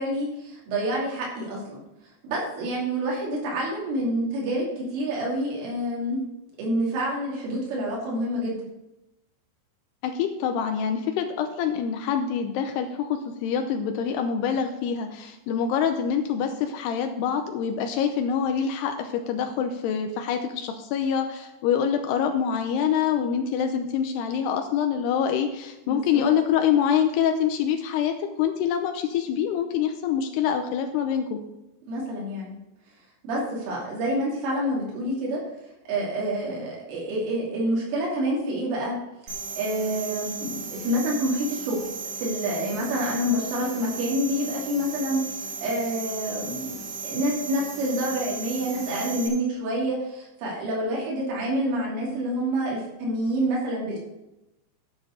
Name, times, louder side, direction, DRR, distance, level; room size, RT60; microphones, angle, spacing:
voice 1, 0.0-1.8 2.2-6.2 6.6-8.6 25.9-26.2 31.9-32.5 33.2-35.4 35.9-39.0 39.6-41.8 42.1-46.8 47.0-54.0, right 1 dB, 85° right, -4 dB, 5.3 m, -27 dB
voice 2, 10.0-31.4, left 8 dB, 90° left, 6 dB, 2.4 m, -25 dB
sound 1, 39.3-49.3, right 4 dB, 40° right, 3.2 m, -36 dB
12.5 x 7.0 x 5.2 m, 0.92 s
omnidirectional pair, 5.6 m